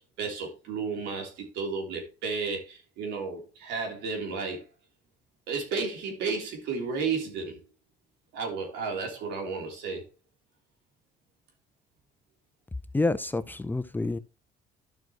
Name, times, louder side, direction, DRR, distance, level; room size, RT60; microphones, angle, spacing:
voice 1, 0.2-4.6 5.5-7.6 8.3-10.0, right 4 dB, 85° right, 3.4 m, -32 dB
voice 2, 12.9-14.2, left 2 dB, 10° left, 0.5 m, -28 dB
12.0 x 6.1 x 3.0 m
cardioid pair, 110°, 17 cm